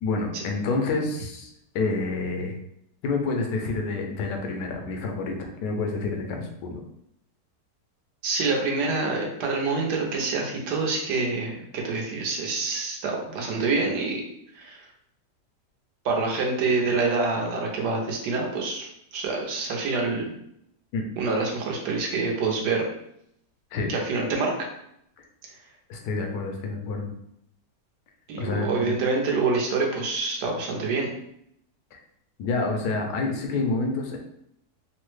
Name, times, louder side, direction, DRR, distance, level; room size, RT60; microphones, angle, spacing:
voice 1, 0.0-2.6 3.0-6.8 20.9-21.0 23.7-23.9 25.9-27.1 28.4-29.0 31.9-32.0 32.4-34.2, left 3 dB, 90° left, 2 dB, 1.2 m, -28 dB
voice 2, 8.2-14.2 14.5-14.9 16.0-20.3 21.2-22.9 23.9-24.7 28.3-31.1, right 3 dB, 75° right, 0 dB, 1.3 m, -26 dB
3.6 x 2.1 x 3.1 m, 0.74 s
omnidirectional pair, 1.8 m